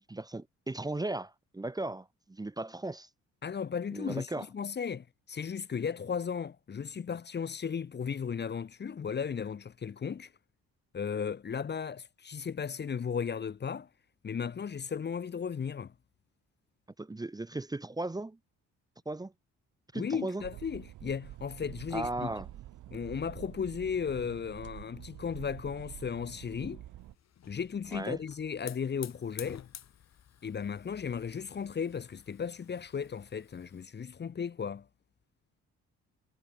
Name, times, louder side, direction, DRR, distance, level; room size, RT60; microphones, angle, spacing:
voice 1, 0.0-3.1 3.9-4.4 17.0-18.4 19.1-19.3 19.9-20.4 21.9-22.5 27.9-28.2, right 2 dB, 15° right, 0.9 m, -36 dB
voice 2, 3.4-10.3 10.9-13.9 14.2-15.9 19.9-22.3 22.9-26.8 27.5-29.6 30.4-34.9, left 6 dB, 35° left, 0.9 m, -35 dB
sound 1, 20.4-27.2, right 14 dB, 80° right, 1.8 m, -47 dB
Hiss / Fire, 27.0-33.8, left 9 dB, 60° left, 4.3 m, -51 dB
cardioid pair, 90°, 30 cm